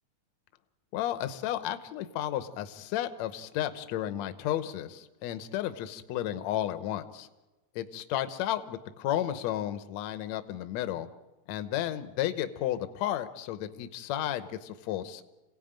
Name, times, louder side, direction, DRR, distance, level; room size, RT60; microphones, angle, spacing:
voice 1, 0.9-7.3 7.8-11.1 11.5-15.2, left 12 dB, 70° left, 10 dB, 2.2 m, -33 dB
27.5 x 17.5 x 8.9 m, 1.1 s
omnidirectional pair, 3.6 m